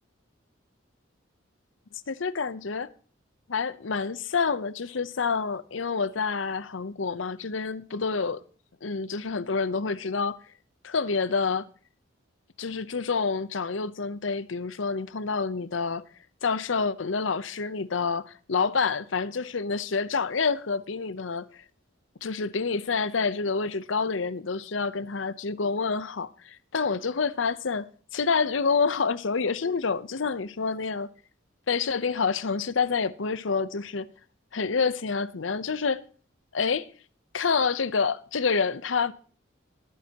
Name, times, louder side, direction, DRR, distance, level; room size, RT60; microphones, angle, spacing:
voice 1, 2.1-2.9 3.5-8.4 8.8-10.4 10.8-11.7 12.6-16.0 16.4-21.6 22.2-31.1 31.7-34.1 34.5-36.0 36.5-36.9 37.3-39.1, left 5 dB, 85° left, 0.8 m, -28 dB
21.0 x 9.5 x 2.9 m
head